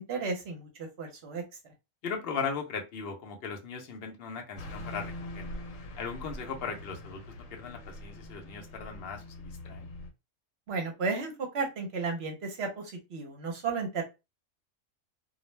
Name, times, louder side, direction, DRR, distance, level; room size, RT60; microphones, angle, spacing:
voice 1, 0.0-1.4 10.7-12.8 13.1-14.0, right 4 dB, 60° right, 2 dB, 0.8 m, -33 dB
voice 2, 2.0-5.5 6.0-9.9, left 5 dB, 60° left, 3 dB, 0.7 m, -38 dB
Car passing by / Truck, 4.6-10.1, left 1 dB, 80° left, 1.0 m, -43 dB
2.3 x 2.0 x 3.1 m, 0.26 s
omnidirectional pair, 1.3 m